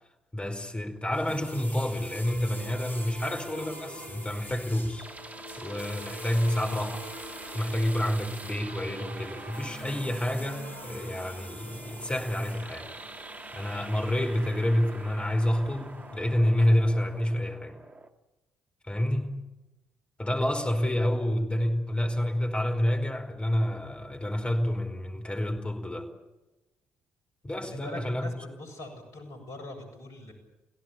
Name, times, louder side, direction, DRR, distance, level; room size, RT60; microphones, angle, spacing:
voice 1, 0.3-5.1 5.6-7.1 7.5-12.9 13.5-17.8 18.8-19.3 20.2-26.1 27.4-28.3, left 1 dB, 20° left, 5 dB, 5.0 m, -28 dB
sound 1, 1.1-17.2, equal, 85° left, 1.6 m, -47 dB
sound 2, 1.2-14.8 15.1-15.2 15.4-15.5, equal, 75° right, 4.5 m, -48 dB
sound 3, 4.5-18.1, right 2 dB, 25° right, 2.0 m, -46 dB
voice 2, 27.6-28.3 28.6-30.3, left 1 dB, 60° left, 5 dB, 7.6 m, -42 dB
27.0 x 17.0 x 8.6 m, 1.0 s
figure-of-eight pair, 45°, 6 cm